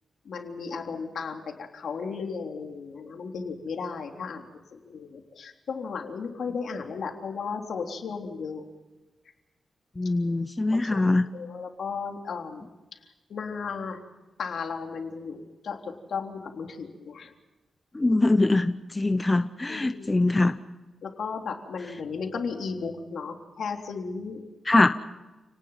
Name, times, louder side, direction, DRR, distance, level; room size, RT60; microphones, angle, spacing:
voice 1, 0.3-1.4 1.7-8.6 10.7-11.1 11.3-12.7 13.3-14.0 14.4-17.3 19.7-20.3 21.0-24.4, left 5 dB, 70° left, 2 dB, 3.6 m, -35 dB
voice 2, 10.0-11.2 17.9-20.6 24.7-24.9, left 2 dB, 20° left, 10 dB, 0.8 m, -23 dB
30.0 x 19.0 x 5.9 m, 1.1 s
wide cardioid pair, 110°, 0 cm